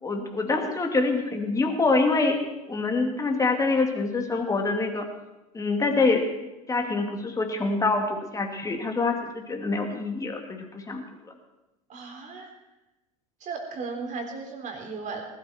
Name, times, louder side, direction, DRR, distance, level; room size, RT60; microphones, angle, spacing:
voice 1, 0.0-2.4 2.7-5.1 5.5-6.3 6.7-11.0, left 3 dB, 15° left, 3 dB, 2.5 m, -25 dB
voice 2, 11.9-12.5 13.4-15.2, right 4 dB, 40° right, 2 dB, 3.8 m, -36 dB
19.5 x 12.5 x 4.5 m, 1.0 s
hypercardioid pair, 85°, 20 cm